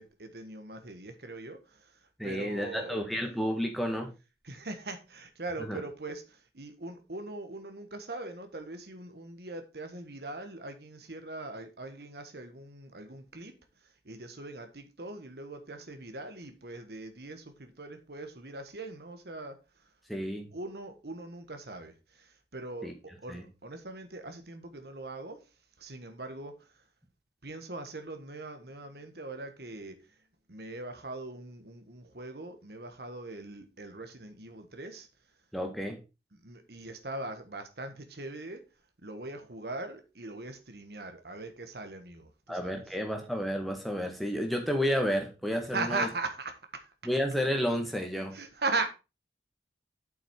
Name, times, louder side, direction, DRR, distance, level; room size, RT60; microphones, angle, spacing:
voice 1, 0.0-3.0 4.4-19.9 20.5-25.5 25.8-26.8 27.4-30.1 30.5-35.1 36.3-38.6 39.0-42.9 45.7-46.9 48.3-48.9, right 3 dB, 65° right, 1.3 m, -40 dB
voice 2, 2.2-4.1 5.6-5.8 20.1-20.5 22.8-22.9 23.3-23.4 35.5-36.0 42.5-46.1 47.1-48.3, equal, ahead, 1.7 m, -31 dB
8.0 x 6.0 x 4.6 m
head